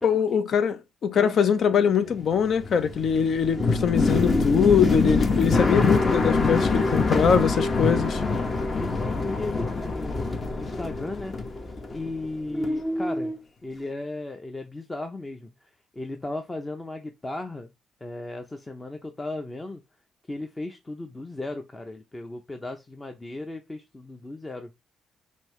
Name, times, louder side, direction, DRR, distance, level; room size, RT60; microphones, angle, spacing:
voice 1, 0.0-8.2, left 7 dB, 60° left, 0.6 m, -22 dB
voice 2, 1.1-2.2 7.5-8.0 8.3-11.3 11.9-13.3 13.6-17.7 18.0-19.8 20.3-24.7, left 2 dB, 20° left, 0.6 m, -36 dB
sound 1, 2.1-12.3 12.5-13.4, left 3 dB, 35° left, 1.0 m, -25 dB
5.3 x 2.7 x 3.1 m
cardioid pair, 90°, 0 cm